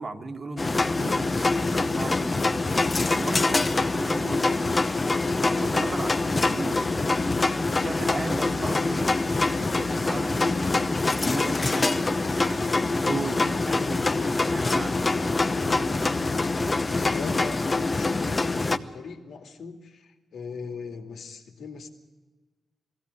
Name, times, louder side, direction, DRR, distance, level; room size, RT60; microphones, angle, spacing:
voice 1, 0.0-2.5 3.1-5.0 5.4-7.0 7.6-9.2 9.5-10.6 11.1-14.9 15.6-16.1, right 3 dB, 35° right, 6 dB, 1.6 m, -37 dB
sound 1, 0.6-18.8, left 3 dB, 25° left, 0.8 m, -25 dB
voice 2, 16.9-21.9, left 5 dB, 80° left, 5 dB, 2.4 m, -40 dB
21.0 x 16.0 x 9.7 m, 1.3 s
wide cardioid pair, 140°, 0 cm